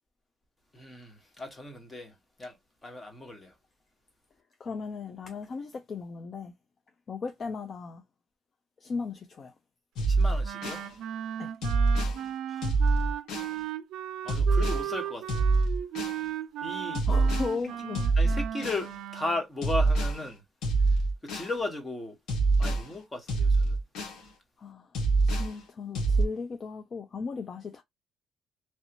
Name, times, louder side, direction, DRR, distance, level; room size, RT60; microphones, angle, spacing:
voice 1, 0.7-2.1 2.4-2.6 2.8-3.5 10.1-10.8 12.5-12.7 14.2-15.5 16.6-17.0 18.2-20.4 21.2-22.2 22.6-23.8, left 2 dB, 25° left, 1.5 m, -36 dB
voice 2, 4.6-6.5 7.1-8.0 8.8-9.5 11.4-11.5 17.1-18.1 24.6-24.9 25.2-27.8, left 4 dB, 45° left, 0.5 m, -36 dB
sound 1, 10.0-10.9 11.6-12.2 12.6-13.5 14.3-14.9 15.3-16.2 16.9-17.5 17.9-18.9 19.6-20.2 20.6-21.5 22.3-22.8 23.3-24.2 24.9-25.5 25.9-26.2, right 3 dB, 80° left, 1.4 m, -25 dB
Wind instrument woodwind instrument, 10.4-19.4, right 11 dB, 80° right, 0.4 m, -36 dB
3.2 x 2.6 x 2.9 m
cardioid pair, 85°, 0 cm